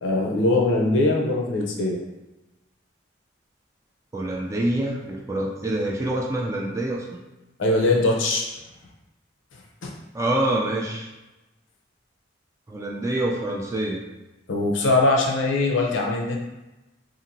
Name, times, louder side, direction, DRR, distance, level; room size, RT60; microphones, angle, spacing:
voice 1, 0.0-2.0 7.6-8.5 9.8-9.9 14.5-16.4, left 2 dB, 80° left, 0 dB, 0.5 m, -21 dB
voice 2, 4.1-7.2 10.1-11.1 12.7-14.0, right 1 dB, 15° right, -1 dB, 0.3 m, -26 dB
2.8 x 2.5 x 2.6 m, 1.0 s
head